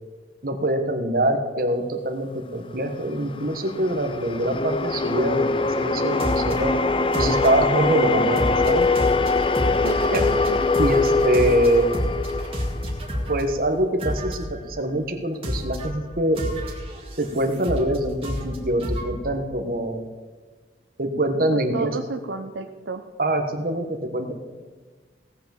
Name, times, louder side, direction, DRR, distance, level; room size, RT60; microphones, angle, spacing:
voice 1, 0.4-6.7 7.1-8.9 10.1-10.2 10.8-11.9 13.3-16.4 17.2-20.0 21.0-22.0 23.2-24.3, right 1 dB, 50° right, 6 dB, 1.3 m, -24 dB
sound 1, 3.0-13.4, left 3 dB, 30° left, 0.5 m, -23 dB
sound 2, 6.2-6.7 7.1-7.8 8.4-13.4 14.0-14.6 15.4-15.9 16.4-18.0 18.2-19.1, equal, 30° right, 2.1 m, -29 dB
voice 2, 9.8-10.6 21.7-23.0, right 3 dB, 75° right, 6 dB, 0.6 m, -32 dB
17.0 x 6.0 x 7.1 m, 1.4 s
head